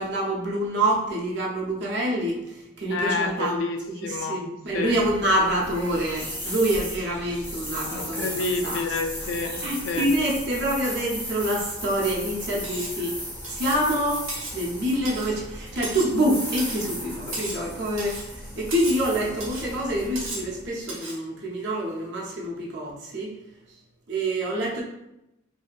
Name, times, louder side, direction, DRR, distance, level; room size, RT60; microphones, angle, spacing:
voice 1, 0.0-3.6 3.9-8.3 8.6-8.8 9.5-13.1 13.5-14.2 14.5-18.3 18.6-23.3 24.1-24.8, right 1 dB, 60° right, -3 dB, 0.6 m, -26 dB
voice 2, 2.9-4.4 4.7-4.9 7.9-10.1, left 3 dB, 70° left, 5 dB, 0.3 m, -29 dB
sound 1, 4.7-20.9, equal, 10° left, 0.4 m, -36 dB
Cutlery silverware, 12.6-13.0 13.4-13.8 14.3-14.6 15.0-15.4 15.8-16.2 16.6-16.9 17.3-17.7 18.0-18.3 18.7-19.0 19.4-19.7 20.2-20.5 20.9-21.2, right 2 dB, 90° right, 0.8 m, -35 dB
2.7 x 2.5 x 2.2 m, 0.89 s
head